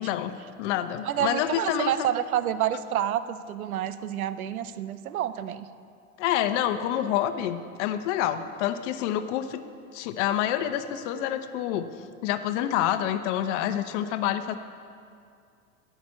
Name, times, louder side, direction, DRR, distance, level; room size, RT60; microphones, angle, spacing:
voice 1, 0.0-1.9 6.2-9.6 9.9-11.9 12.2-14.6, left 11 dB, 55° left, 10 dB, 0.9 m, -27 dB
voice 2, 1.0-5.7, right 11 dB, 80° right, 13 dB, 0.7 m, -28 dB
15.0 x 6.1 x 8.3 m, 2.4 s
hypercardioid pair, 95°, 42 cm